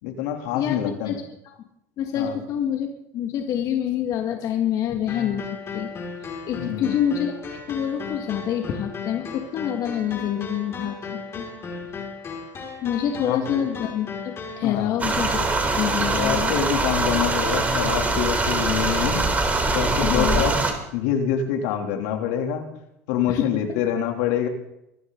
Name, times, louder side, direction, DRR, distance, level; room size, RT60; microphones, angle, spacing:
voice 1, 0.0-1.2 2.1-2.4 6.6-7.0 13.2-13.6 14.6-15.0 16.2-19.2 19.7-20.6 20.9-22.6 23.1-24.5, left 9 dB, 75° left, 3 dB, 3.2 m, -26 dB
voice 2, 0.5-1.2 1.5-1.6 2.0-2.9 3.1-5.4 5.7-5.9 6.5-7.4 7.7-11.0 11.3-11.5 12.8-16.5 17.2-17.3 18.3-18.5 20.0-20.4 23.3-23.4, left 10 dB, 50° left, 3 dB, 2.1 m, -26 dB
sound 1, 5.1-14.7, left 4 dB, 35° left, 5.7 m, -36 dB
sound 2, 15.0-20.7, right 3 dB, 20° right, 3.6 m, -23 dB
25.0 x 11.5 x 4.0 m, 0.81 s
supercardioid pair, 100°, 8 cm